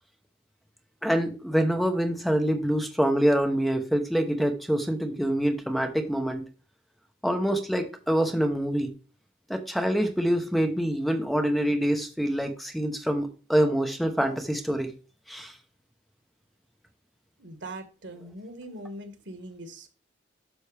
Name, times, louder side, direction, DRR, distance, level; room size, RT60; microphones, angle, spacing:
voice 1, 1.0-6.4 7.2-8.9 9.5-14.9 15.3-15.5, equal, ahead, 5 dB, 0.9 m, -25 dB
voice 2, 17.4-19.9, right 1 dB, 80° right, 7 dB, 1.6 m, -41 dB
11.0 x 6.1 x 3.4 m, 0.35 s
head